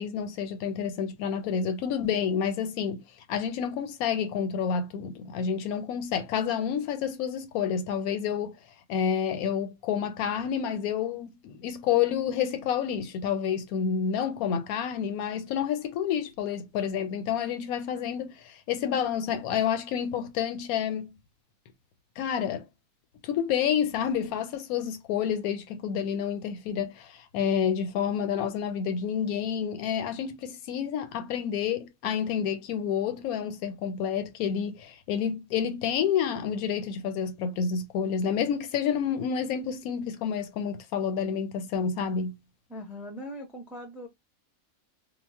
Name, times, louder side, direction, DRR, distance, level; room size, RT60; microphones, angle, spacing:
voice 1, 0.0-3.0 3.3-8.6 8.9-21.2 22.2-22.7 23.2-42.4, left 8 dB, 90° left, 1.0 m, -29 dB
voice 2, 42.7-44.1, equal, ahead, 0.4 m, -40 dB
2.3 x 2.0 x 3.4 m
omnidirectional pair, 1.5 m